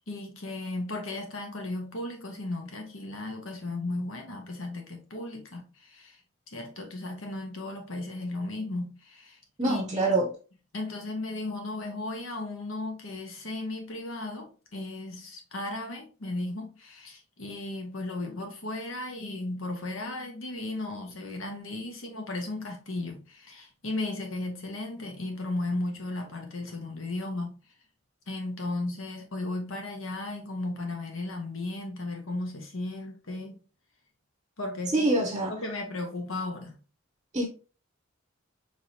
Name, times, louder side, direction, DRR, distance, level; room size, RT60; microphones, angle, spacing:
voice 1, 0.1-6.2 6.5-9.4 9.6-10.1 10.7-27.6 28.3-33.6 34.6-35.1 35.5-36.7, left 2 dB, 85° left, 1.2 m, -35 dB
voice 2, 9.6-10.3 34.9-35.6 37.3-37.5, right 2 dB, 20° right, 0.6 m, -25 dB
4.7 x 3.3 x 2.8 m
head